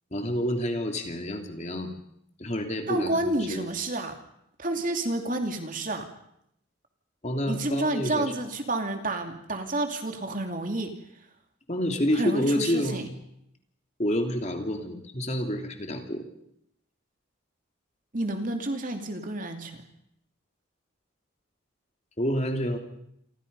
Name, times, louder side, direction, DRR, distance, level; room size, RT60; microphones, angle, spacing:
voice 1, 0.1-1.9 2.4-3.7 7.2-8.3 11.7-13.1 14.0-16.2 22.2-22.8, equal, 35° left, 4 dB, 2.9 m, -28 dB
voice 2, 2.9-4.1 4.6-6.0 7.5-10.9 12.2-13.1 18.1-19.8, right 2 dB, 40° right, 5 dB, 2.7 m, -30 dB
28.5 x 24.5 x 5.5 m, 0.76 s
head